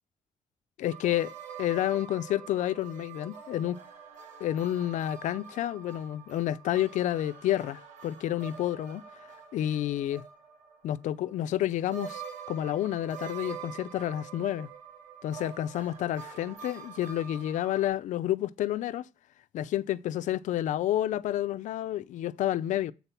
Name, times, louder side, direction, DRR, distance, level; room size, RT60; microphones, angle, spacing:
voice 1, 0.8-3.8 4.4-9.0 9.5-10.2 10.8-14.7 15.2-19.1 19.5-22.9, left 12 dB, 90° left, 0.4 m, -30 dB
sound 1, 0.9-11.6 11.9-17.9, right 7 dB, 80° right, 1.5 m, -45 dB
8.3 x 3.9 x 5.7 m
cardioid pair, 130°, 12 cm